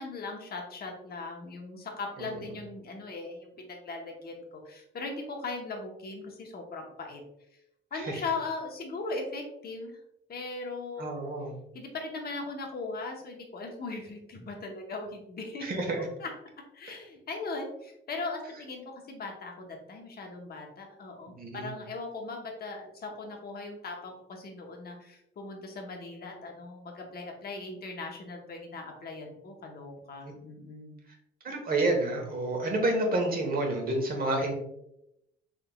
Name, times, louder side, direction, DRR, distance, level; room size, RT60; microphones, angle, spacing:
voice 1, 0.0-7.2 7.9-10.0 10.3-11.1 11.7-15.7 16.2-16.3 16.7-31.0, left 3 dB, 50° left, 1 dB, 1.0 m, -39 dB
voice 2, 11.0-11.5 15.6-16.1 21.4-21.7 30.2-30.3 31.4-34.5, right 2 dB, 50° right, 1 dB, 1.1 m, -29 dB
3.7 x 3.4 x 2.3 m, 0.80 s
cardioid pair, 90°, 20 cm